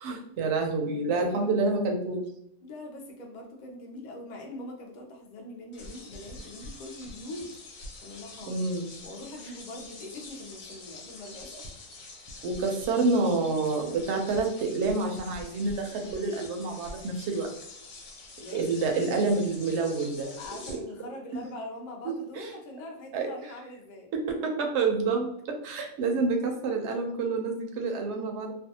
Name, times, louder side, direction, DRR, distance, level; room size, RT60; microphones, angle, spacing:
voice 1, 0.0-2.3 8.5-8.9 12.4-17.5 18.5-20.4 20.7-20.8 22.4-22.5 23.1-23.3 24.1-28.5, right 3 dB, 65° right, 3 dB, 0.8 m, -28 dB
voice 2, 1.1-1.8 2.6-7.5 8.0-8.6 9.0-11.6 18.4-18.7 20.4-24.1, left 1 dB, 55° left, 0 dB, 0.5 m, -42 dB
sound 1, 5.7-20.8, left 2 dB, 85° left, 1.0 m, -46 dB
2.5 x 2.2 x 2.7 m, 0.72 s
omnidirectional pair, 1.4 m